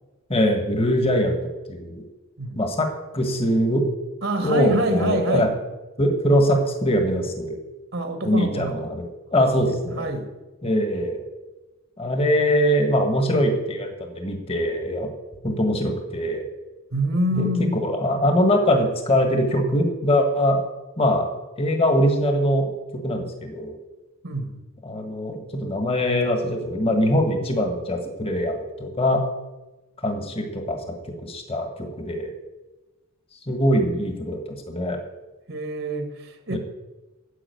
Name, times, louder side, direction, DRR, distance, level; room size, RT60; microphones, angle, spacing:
voice 1, 0.3-1.4 1.7-2.1 2.6-2.9 3.1-3.8 4.4-5.5 6.0-7.6 8.2-9.1 9.3-10.1 10.6-11.2 12.0-15.1 15.4-16.5 17.3-20.6 21.0-21.3 21.6-23.7 24.9-29.2 30.0-31.0 31.2-32.3 33.5-35.0 36.5-36.6, equal, 30° left, 5 dB, 1.6 m, -22 dB
voice 2, 4.2-5.5 7.9-8.8 9.3-10.3 16.9-17.8 24.2-24.6 35.5-36.6, right 1 dB, 65° right, 6 dB, 1.7 m, -26 dB
10.0 x 7.7 x 9.3 m, 1.1 s
head